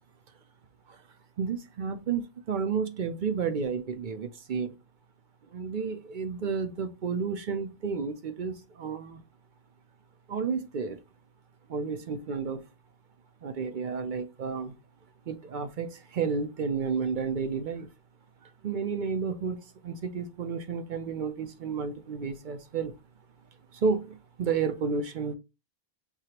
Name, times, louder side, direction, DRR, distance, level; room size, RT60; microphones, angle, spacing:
voice 1, 1.4-4.7 5.5-9.2 10.3-11.0 11.7-12.7 13.4-14.7 15.3-17.9 18.6-22.9 23.7-25.3, right 5 dB, 55° right, 0.7 m, -31 dB
6.4 x 2.4 x 2.8 m
omnidirectional pair, 1.0 m